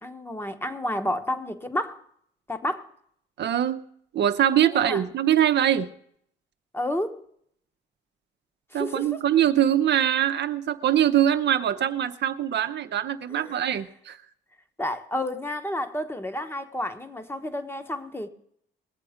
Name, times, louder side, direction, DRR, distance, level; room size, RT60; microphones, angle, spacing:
voice 1, 0.0-2.0 2.5-2.9 4.7-5.0 6.7-7.2 8.7-9.2 13.3-13.8 14.8-18.3, left 1 dB, 10° left, 1.1 m, -31 dB
voice 2, 3.4-3.8 4.1-5.9 8.7-14.2, right 10 dB, 60° right, 0.7 m, -23 dB
20.5 x 7.6 x 5.0 m
cardioid pair, 90°, 20 cm